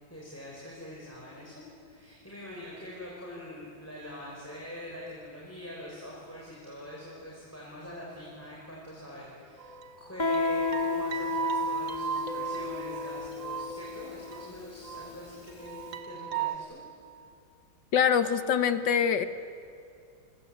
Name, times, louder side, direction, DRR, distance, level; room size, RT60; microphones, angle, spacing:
voice 1, 0.1-16.8, left 1 dB, 5° left, -5 dB, 5.3 m, -44 dB
sound 1, 9.6-15.2 15.5-16.6, right 7 dB, 70° right, 2.3 m, -36 dB
Guitar, 10.2-15.6, left 4 dB, 25° left, 1.2 m, -33 dB
voice 2, 17.9-19.2, left 7 dB, 65° left, 11 dB, 1.7 m, -24 dB
29.5 x 25.5 x 7.9 m, 2.5 s
omnidirectional pair, 2.2 m